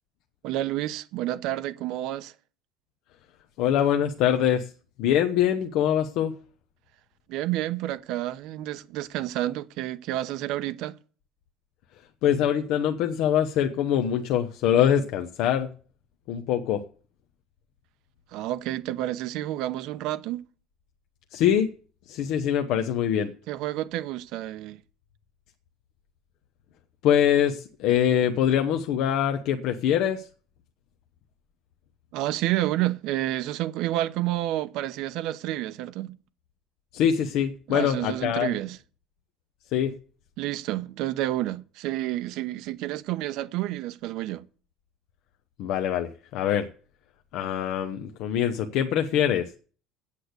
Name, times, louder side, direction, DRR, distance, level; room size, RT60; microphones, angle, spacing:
voice 1, 0.4-2.3 7.3-11.0 18.3-20.4 23.5-24.8 32.1-36.2 37.7-38.8 40.4-44.4, right 14 dB, 65° right, 0.8 m, -29 dB
voice 2, 3.6-4.7 5.0-6.3 12.2-15.7 16.3-16.8 21.3-21.7 22.1-23.3 27.0-30.3 36.9-38.6 39.7-39.9 45.6-46.7 47.3-49.5, left 9 dB, 65° left, 0.8 m, -24 dB
8.5 x 8.1 x 8.1 m
cardioid pair, 150°, 0 cm